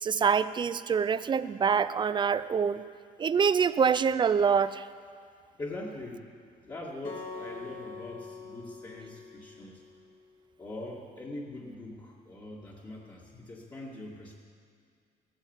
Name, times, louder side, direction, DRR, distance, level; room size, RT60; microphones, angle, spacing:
voice 1, 0.0-2.8 3.2-4.8, right 6 dB, 25° right, 15 dB, 0.5 m, -25 dB
voice 2, 5.6-6.3 6.6-9.8 10.6-14.4, left 2 dB, 25° left, -6 dB, 2.2 m, -42 dB
Acoustic guitar, 7.0-10.3, left 4 dB, 50° left, 2.6 m, -44 dB
15.5 x 9.0 x 7.4 m, 2.1 s
cardioid pair, 110°, 17 cm